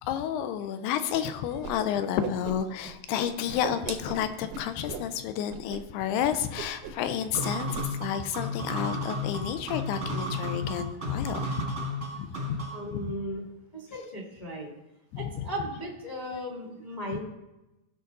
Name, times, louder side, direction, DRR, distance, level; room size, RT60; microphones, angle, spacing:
voice 1, 0.0-11.7 12.2-12.6 12.9-13.1 15.1-15.5, left 9 dB, 80° left, 10 dB, 2.4 m, -31 dB
Whoosh swoosh swish, 1.6-1.7 2.0-2.9 3.2-5.1 5.5-5.8 6.0-6.2 6.6-7.1 7.3-7.9, right 6 dB, 85° right, 1.7 m, -38 dB
sound 1, 7.3-12.9, left 1 dB, 40° right, 1.0 m, -33 dB
voice 2, 12.7-13.4 13.7-14.7 15.1-17.2, equal, 25° left, -2 dB, 0.9 m, -36 dB
17.0 x 6.4 x 4.0 m, 0.97 s
omnidirectional pair, 5.2 m